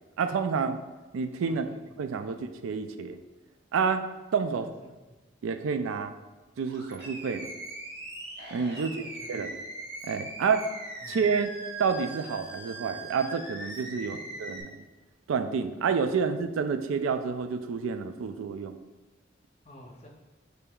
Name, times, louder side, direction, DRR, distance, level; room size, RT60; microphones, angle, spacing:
voice 1, 0.2-0.8 1.1-1.7 2.0-3.2 3.7-4.0 4.3-4.7 5.4-6.1 6.6-7.5 8.5-9.6 10.0-10.7 11.1-11.5 11.8-14.8 15.3-18.8, right 5 dB, 90° right, 9 dB, 0.3 m, -29 dB
voice 2, 1.4-1.8 2.2-2.3 4.5-5.2 8.7-9.6 11.0-11.2 13.9-14.3 19.6-20.1, left 1 dB, 30° left, -1 dB, 0.7 m, -51 dB
Animal, 6.6-14.6, right 1 dB, 55° right, 1.0 m, -41 dB
6.7 x 3.3 x 2.3 m, 1.2 s
head